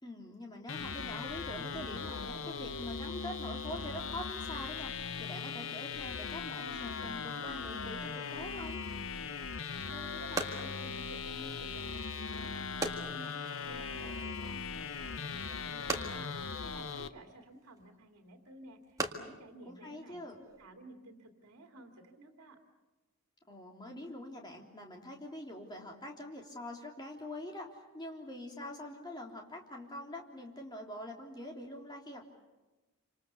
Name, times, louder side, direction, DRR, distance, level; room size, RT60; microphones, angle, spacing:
voice 1, 0.0-8.8 19.6-20.4 23.5-32.3, left 1 dB, 20° left, 0 dB, 3.2 m, -44 dB
sound 1, 0.7-17.1, left 5 dB, 60° left, 0.9 m, -39 dB
Wooden box lid soft slam, 9.3-20.7, right 2 dB, 15° right, 1.8 m, -43 dB
voice 2, 9.9-22.6, right 1 dB, 80° right, 3 dB, 2.8 m, -53 dB
27.5 x 26.5 x 7.0 m, 1.1 s
head